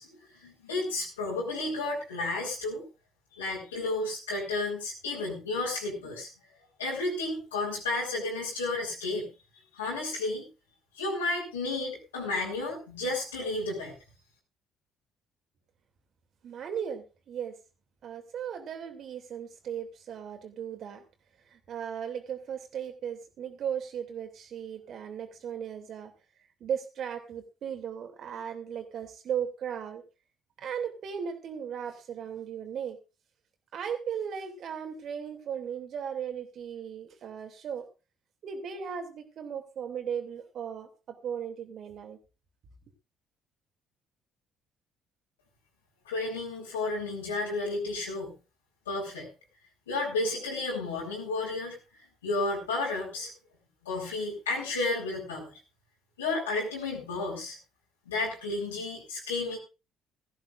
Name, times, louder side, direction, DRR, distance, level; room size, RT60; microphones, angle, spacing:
voice 1, 0.0-2.8 3.3-6.3 6.8-9.3 9.7-10.4 10.9-13.9 46.0-48.3 48.9-49.3 49.9-51.8 52.2-53.3 53.8-55.5 56.2-57.6 58.1-59.6, left 2 dB, 80° left, -4 dB, 4.7 m, -32 dB
voice 2, 16.4-17.6 18.0-21.0 21.5-26.1 26.6-30.0 30.6-33.0 33.7-37.9 38.4-42.2, right 8 dB, 50° right, 6 dB, 2.7 m, -37 dB
17.0 x 14.5 x 2.6 m, 0.29 s
figure-of-eight pair, 50°, 0 cm